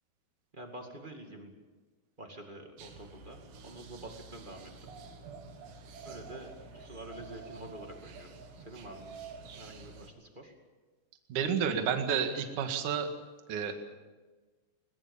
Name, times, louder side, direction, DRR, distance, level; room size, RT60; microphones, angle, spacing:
voice 1, 0.5-1.5 2.2-4.9 6.0-9.1 9.5-10.5, right 1 dB, 30° right, 3 dB, 0.8 m, -47 dB
sound 1, 2.8-10.1, right 4 dB, 80° right, 4.0 m, -49 dB
voice 2, 11.3-13.1 13.5-13.7, right 7 dB, 55° right, 5 dB, 2.9 m, -30 dB
21.5 x 21.0 x 7.2 m, 1.3 s
omnidirectional pair, 4.9 m